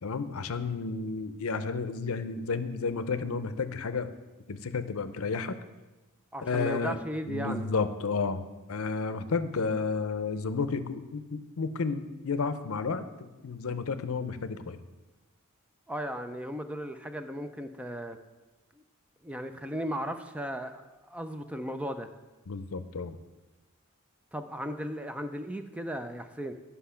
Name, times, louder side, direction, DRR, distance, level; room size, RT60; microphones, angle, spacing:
voice 1, 0.0-4.1 4.5-5.6 6.4-7.0 7.3-14.8 22.5-23.2, left 4 dB, 70° left, 11 dB, 0.6 m, -32 dB
voice 2, 6.3-7.7 15.9-18.2 19.2-22.1 24.3-26.5, equal, 5° right, 8 dB, 0.4 m, -36 dB
10.5 x 5.7 x 5.7 m, 1.1 s
head